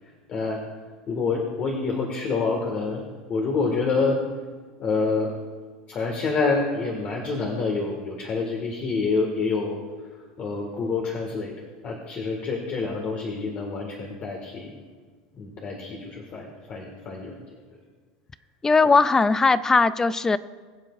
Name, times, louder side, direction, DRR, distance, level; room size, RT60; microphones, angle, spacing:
voice 1, 0.3-0.6 1.1-3.0 3.3-4.2 4.8-5.3 5.9-9.8 10.4-11.6 11.8-14.8 15.3-17.6 18.8-18.9, left 4 dB, 40° left, 1 dB, 1.6 m, -27 dB
voice 2, 18.6-20.4, left 4 dB, 15° left, 16 dB, 0.4 m, -19 dB
22.5 x 7.6 x 2.4 m, 1.5 s
supercardioid pair, 120°, 3 cm